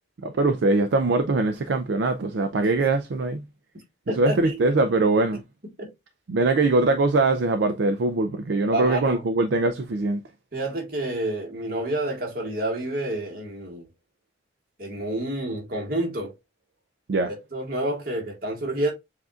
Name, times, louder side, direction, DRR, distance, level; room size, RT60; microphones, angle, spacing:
voice 1, 0.2-3.4 4.2-5.4 6.3-10.2 17.1-17.3, right 2 dB, 70° right, 0.4 m, -22 dB
voice 2, 4.1-4.7 5.8-5.9 8.7-9.2 10.5-13.9 14.8-16.3 17.2-18.9, right 1 dB, 50° right, 1.7 m, -29 dB
7.2 x 2.5 x 2.4 m
head